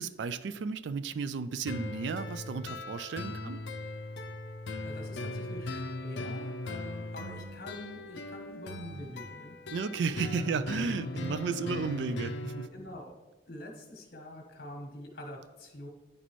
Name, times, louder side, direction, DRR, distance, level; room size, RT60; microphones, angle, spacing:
voice 1, 0.0-3.6 9.7-12.7, right 5 dB, 75° right, 13 dB, 0.3 m, -33 dB
sound 1, 1.7-12.7, left 2 dB, 70° left, 0.6 m, -39 dB
voice 2, 4.8-9.6 10.2-10.5 12.7-13.2 13.5-15.9, left 1 dB, 55° left, 1 dB, 1.3 m, -45 dB
10.0 x 4.2 x 3.1 m, 1.1 s
head